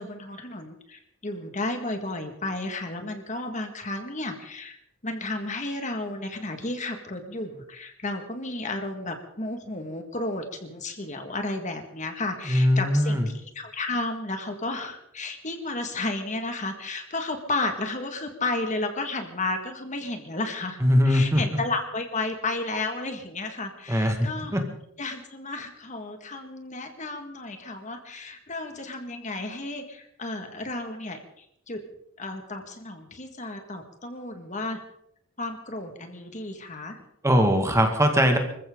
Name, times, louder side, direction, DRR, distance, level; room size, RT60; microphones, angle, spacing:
voice 1, 0.0-4.8 5.0-20.8 21.1-24.6 25.0-31.8 32.2-34.8 35.4-37.0, left 2 dB, 35° left, 6 dB, 1.8 m, -33 dB
voice 2, 12.5-13.2 20.8-21.4 23.9-24.2 24.5-24.6 37.2-38.4, equal, 15° right, 4 dB, 1.9 m, -20 dB
25.5 x 15.0 x 3.8 m, 0.72 s
head